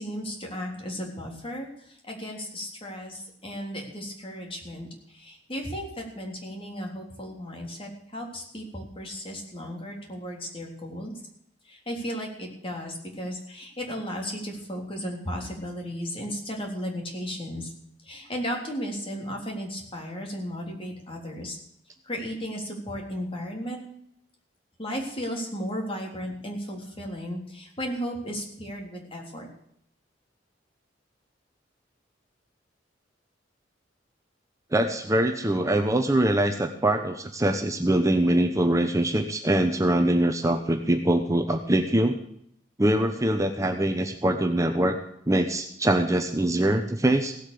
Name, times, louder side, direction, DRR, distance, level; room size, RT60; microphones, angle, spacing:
voice 1, 0.0-11.2 11.7-17.7 18.0-21.6 22.0-23.8 24.8-29.5, equal, 30° left, 1 dB, 3.6 m, -35 dB
voice 2, 34.7-42.2 42.8-45.0 45.3-47.3, right 1 dB, 20° right, 5 dB, 1.0 m, -23 dB
17.0 x 8.3 x 6.8 m, 0.72 s
head